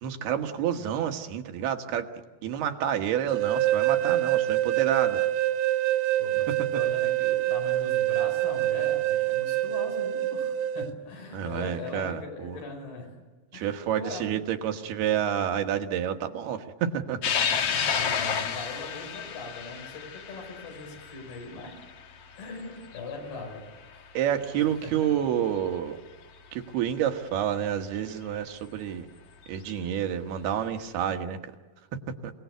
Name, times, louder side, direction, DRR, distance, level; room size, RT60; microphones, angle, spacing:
voice 1, 0.0-2.1 2.4-5.2 11.3-12.6 13.5-17.2 24.1-26.0 26.5-29.1 29.5-31.4, right 9 dB, 90° right, 5 dB, 3.5 m, -29 dB
sound 1, 3.3-10.9, right 14 dB, 65° right, 2.5 m, -26 dB
voice 2, 6.2-13.1 13.5-13.7 14.0-14.3 17.5-21.7 22.4-23.6 23.9-24.2 24.6-25.1, left 3 dB, 85° left, 2 dB, 7.2 m, -40 dB
sound 2, 17.2-23.9 24.4-24.5 25.7-25.8 28.0-28.1 29.4-29.7, left 7 dB, 60° left, 1.7 m, -31 dB
28.5 x 18.5 x 8.1 m, 1.3 s
omnidirectional pair, 4.4 m